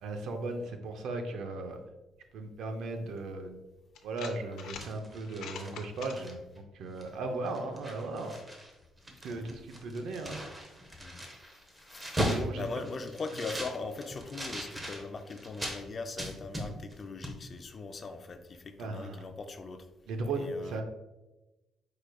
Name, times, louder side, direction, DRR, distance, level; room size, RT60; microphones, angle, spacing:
voice 1, 0.0-1.8 2.3-3.6 4.0-8.3 9.1-10.4 12.3-12.6 18.8-19.2 20.1-20.8, right 2 dB, 70° right, 5 dB, 0.6 m, -37 dB
sound 1, 3.2-3.3 4.0-4.9 5.2-6.2, left 7 dB, 85° left, 0.6 m, -43 dB
sound 2, 4.5-6.6 7.0-7.2 7.4-8.7 9.0-15.8 16.2-17.0 17.2-17.4, equal, 15° right, 0.7 m, -38 dB
voice 2, 11.8-19.9 20.4-20.8, left 3 dB, 30° left, 8 dB, 0.3 m, -40 dB
4.8 x 4.7 x 2.2 m, 1.1 s
cardioid pair, 155°, 0 cm